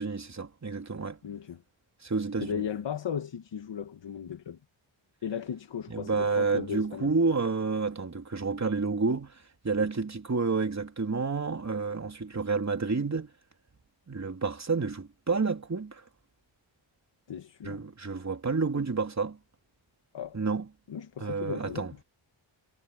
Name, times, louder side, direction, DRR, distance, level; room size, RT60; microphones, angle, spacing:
voice 1, 0.0-1.2 2.0-2.6 5.9-13.3 14.1-16.0 17.6-19.4 20.3-20.6 21.2-21.9, right 4 dB, 35° right, 3.5 m, -30 dB
voice 2, 1.2-1.6 2.4-4.6 5.2-7.1 17.3-17.8 20.1-20.4 20.9-22.0, left 8 dB, 65° left, 1.5 m, -36 dB
cardioid pair, 80°, 47 cm